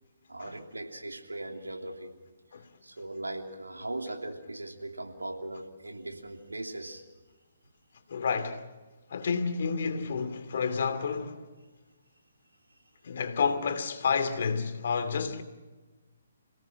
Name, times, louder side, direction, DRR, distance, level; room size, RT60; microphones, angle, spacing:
voice 1, 0.3-2.1 2.8-7.0, right 2 dB, 90° right, 3.0 m, -39 dB
voice 2, 8.1-8.6 9.1-11.4 13.0-15.4, left 5 dB, 55° left, 2.6 m, -30 dB
28.0 x 18.0 x 6.0 m
figure-of-eight pair, 135°, 0 cm